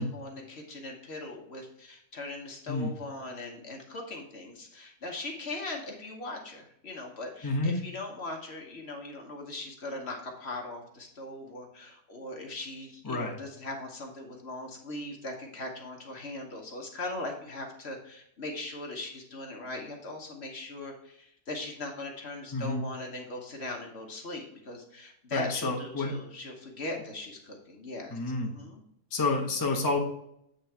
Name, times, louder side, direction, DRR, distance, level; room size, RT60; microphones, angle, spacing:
voice 1, 0.0-28.8, left 2 dB, 45° left, 1 dB, 1.2 m, -40 dB
voice 2, 7.4-7.8 13.0-13.4 22.5-22.8 25.3-26.1 28.1-28.5 29.1-30.0, left 2 dB, 20° left, -1 dB, 0.7 m, -29 dB
8.0 x 3.8 x 4.4 m, 0.75 s
omnidirectional pair, 1.7 m